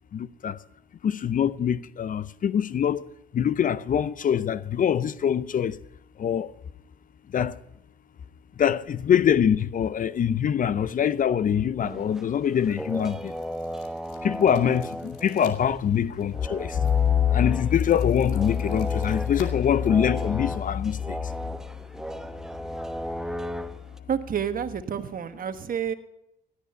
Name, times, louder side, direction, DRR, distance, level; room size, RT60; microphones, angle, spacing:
voice 1, 0.1-0.6 1.0-3.1 3.3-5.8 6.2-6.5 7.3-7.6 8.6-13.3 14.2-21.3, left 8 dB, 45° left, 0.6 m, -24 dB
sound 1, 11.6-20.7, left 6 dB, 85° left, 2.5 m, -51 dB
sound 2, 11.8-16.0 16.3-24.0, equal, 5° right, 0.9 m, -36 dB
voice 2, 24.1-25.9, right 8 dB, 45° right, 1.4 m, -29 dB
17.0 x 11.5 x 5.6 m
supercardioid pair, 65°, 20 cm